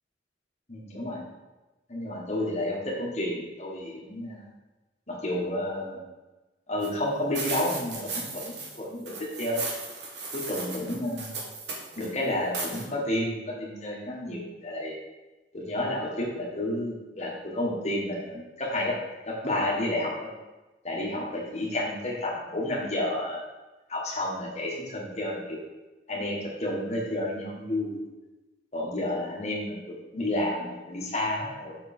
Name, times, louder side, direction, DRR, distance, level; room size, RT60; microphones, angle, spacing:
voice 1, 0.7-1.2 1.9-4.5 5.1-6.0 6.7-9.7 10.3-11.4 12.0-14.9 15.5-18.9 19.2-20.1 20.8-23.4 23.9-25.6 26.1-28.0 28.7-31.8, left 1 dB, 35° left, -3 dB, 1.5 m, -31 dB
sound 1, 6.8-6.9 7.3-8.8 9.1-12.1 12.5-12.8, right 3 dB, 65° right, 1.3 m, -36 dB
6.1 x 5.4 x 4.4 m, 1.1 s
head